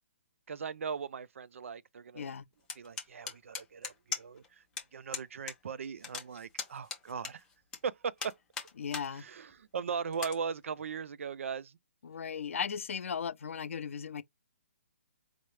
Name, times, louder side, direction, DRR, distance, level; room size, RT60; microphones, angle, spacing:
voice 1, 0.5-2.3 2.8-4.6 4.9-7.4 7.8-8.3 9.1-11.8, right 6 dB, 65° right, 0.4 m, -39 dB
sound 1, 2.7-4.5 4.8-4.9 5.1-5.6 5.8-7.8 8.2-9.1 9.5-9.6 10.1-10.4, left 5 dB, 10° left, 0.4 m, -39 dB
voice 2, 8.8-9.2 12.0-14.2, left 7 dB, 65° left, 0.4 m, -36 dB
4.4 x 2.0 x 3.1 m
hypercardioid pair, 170°, 8 cm